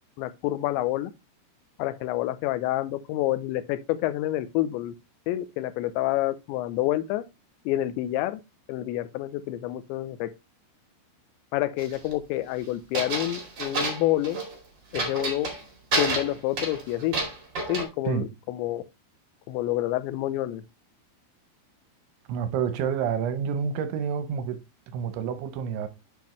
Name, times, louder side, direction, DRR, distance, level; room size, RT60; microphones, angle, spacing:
voice 1, 0.2-1.1 1.8-4.9 5.3-7.2 7.7-8.4 8.7-10.3 11.5-14.4 14.9-15.5 16.0-17.2 17.7-18.8 19.5-20.6, left 15 dB, 80° left, 2.7 m, -28 dB
sound 1, 11.8-12.1 12.9-14.5 14.9-15.6 15.9-17.8, right 2 dB, 40° right, 1.7 m, -29 dB
voice 2, 22.3-24.6 24.9-25.9, right 7 dB, 75° right, 2.9 m, -28 dB
7.4 x 7.0 x 3.1 m
omnidirectional pair, 6.0 m